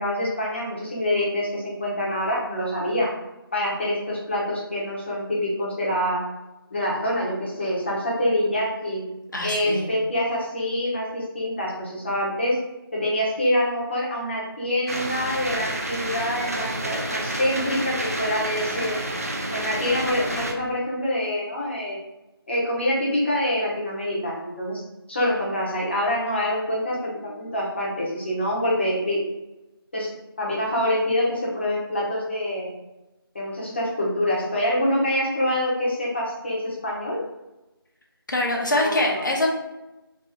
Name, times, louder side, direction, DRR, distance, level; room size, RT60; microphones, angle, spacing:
voice 1, 0.0-3.1 3.5-6.2 6.7-9.0 9.4-12.6 12.9-19.0 19.4-22.0 22.5-24.8 25.1-29.2 29.9-30.1 30.4-32.7 33.3-37.2 38.7-39.2, left 1 dB, 25° left, -4 dB, 1.1 m, -26 dB
voice 2, 9.3-9.9 38.3-39.5, left 1 dB, 50° left, 0 dB, 1.1 m, -24 dB
sound 1, 14.9-20.5, right 1 dB, 40° right, 0.5 m, -29 dB
3.7 x 3.0 x 4.3 m, 0.98 s
figure-of-eight pair, 165°, 13 cm